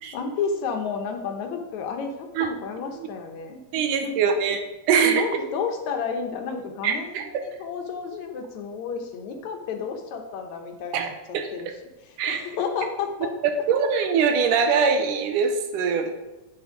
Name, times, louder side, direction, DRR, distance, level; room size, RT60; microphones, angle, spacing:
voice 1, 0.1-3.6 4.0-4.2 5.1-11.7 12.3-13.3, left 5 dB, 70° left, 4 dB, 2.1 m, -31 dB
voice 2, 3.7-5.3 6.8-7.4 10.9-11.1 11.3-11.7 12.2-12.4 13.7-16.1, right 6 dB, 85° right, 6 dB, 2.5 m, -23 dB
8.0 x 6.2 x 5.0 m, 1.0 s
omnidirectional pair, 3.6 m